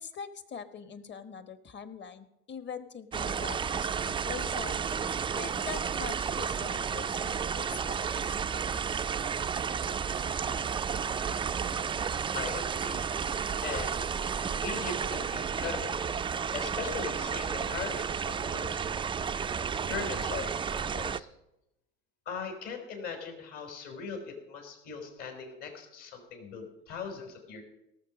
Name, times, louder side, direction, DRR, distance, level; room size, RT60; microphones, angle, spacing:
voice 1, 0.0-4.8 5.3-8.4, left 6 dB, 30° left, 12 dB, 1.2 m, -43 dB
sound 1, 3.1-21.2, right 6 dB, 15° right, 0.4 m, -32 dB
voice 2, 12.3-13.1 13.6-14.1 14.6-16.0 16.5-18.8 19.9-20.6 20.9-21.3 22.3-27.6, left 5 dB, 55° left, 3 dB, 4.0 m, -39 dB
18.0 x 7.1 x 5.1 m, 0.87 s
hypercardioid pair, 75°, 35 cm